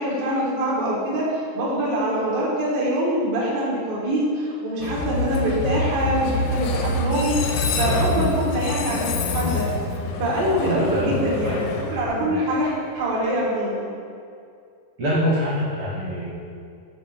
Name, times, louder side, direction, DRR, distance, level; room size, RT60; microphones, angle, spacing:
voice 1, 0.0-9.6 10.2-13.9, right 1 dB, 85° right, -6 dB, 2.8 m, -24 dB
Train, 4.8-12.8, left 2 dB, 85° left, 2.3 m, -26 dB
voice 2, 8.1-8.4 10.6-11.6 12.1-12.3 15.0-16.3, equal, 70° right, -8 dB, 1.3 m, -25 dB
6.9 x 3.9 x 4.2 m, 2.3 s
omnidirectional pair, 3.9 m